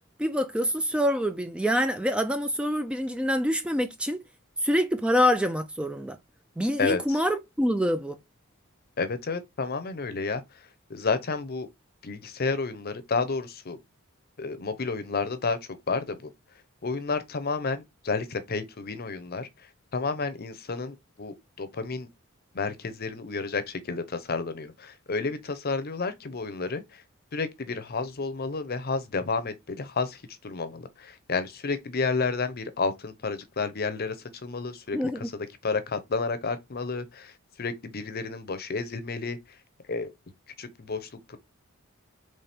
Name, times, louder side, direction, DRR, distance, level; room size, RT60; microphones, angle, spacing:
voice 1, 0.2-4.2 4.6-6.2 6.6-8.2 34.9-35.2, equal, 5° right, 0.3 m, -26 dB
voice 2, 6.8-7.2 9.0-10.4 10.9-11.7 12.0-13.8 14.4-15.6 15.9-16.3 16.8-19.5 19.9-22.1 22.5-27.0 27.3-34.2 34.4-37.3 37.6-39.4 39.9-40.1 40.6-41.4, left 4 dB, 45° left, 0.7 m, -31 dB
4.2 x 3.2 x 3.4 m
head